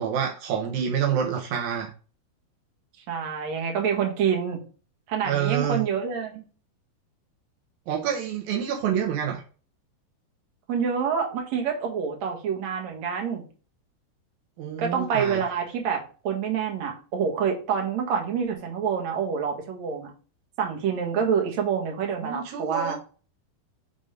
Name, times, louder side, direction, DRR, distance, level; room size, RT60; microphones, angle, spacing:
voice 1, 0.0-1.9 5.2-5.9 7.9-9.4 14.6-15.4 22.2-22.9, right 8 dB, 80° right, 1 dB, 1.7 m, -27 dB
voice 2, 3.1-4.6 5.1-6.4 10.7-13.4 14.8-20.1 20.6-22.9, right 7 dB, 55° right, 1 dB, 2.1 m, -27 dB
7.0 x 3.9 x 5.0 m, 0.37 s
omnidirectional pair, 4.8 m